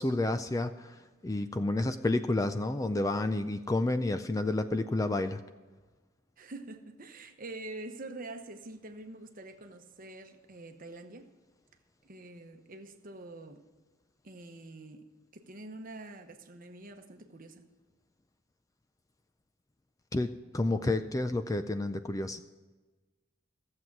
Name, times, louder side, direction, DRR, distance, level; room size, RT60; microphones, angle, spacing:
voice 1, 0.0-5.4 20.1-22.4, left 2 dB, 15° left, 0.4 m, -30 dB
voice 2, 6.4-11.3 12.0-13.7 14.2-15.1 15.3-17.7, right 2 dB, 40° right, 1.0 m, -46 dB
15.0 x 7.7 x 5.9 m
head